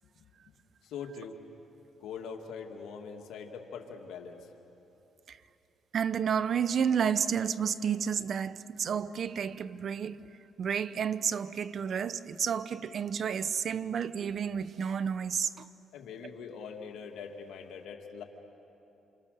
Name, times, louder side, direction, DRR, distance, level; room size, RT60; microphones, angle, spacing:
voice 1, 0.8-1.4 2.0-4.5 15.9-18.2, left 6 dB, 80° left, 2.3 m, -42 dB
voice 2, 5.9-10.3 10.6-15.7, right 7 dB, 55° right, 0.8 m, -31 dB
28.5 x 28.0 x 6.7 m
cardioid pair, 90°, 0 cm